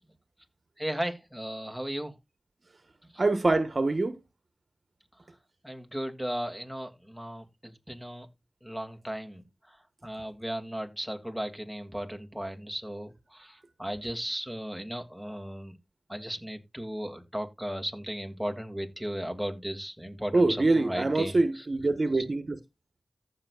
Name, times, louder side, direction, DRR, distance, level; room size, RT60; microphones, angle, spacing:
voice 1, 0.8-2.1 5.6-8.3 8.6-9.4 9.7-9.8 10.0-15.8 16.1-21.7 22.1-22.2, equal, ahead, 2.6 m, -36 dB
voice 2, 3.2-4.1 20.3-22.6, right 2 dB, 50° right, 1.4 m, -24 dB
14.5 x 6.5 x 2.5 m
cardioid pair, 40°, 0 cm